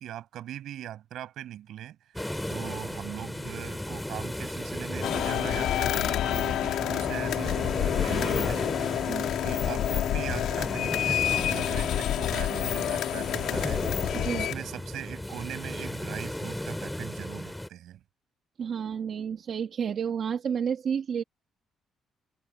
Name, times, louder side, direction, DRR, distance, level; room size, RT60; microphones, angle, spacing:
voice 1, 0.0-2.2 2.5-8.6 9.4-13.8 14.3-18.0, right 12 dB, 65° right, 5.6 m, -40 dB
sound 1, 2.1-17.7, left 1 dB, 5° left, 2.9 m, -35 dB
sound 2, 5.0-14.5, left 11 dB, 70° left, 1.6 m, -28 dB
voice 2, 14.1-14.5 18.6-21.2, right 7 dB, 40° right, 1.4 m, -30 dB
cardioid pair, 175°, 0 cm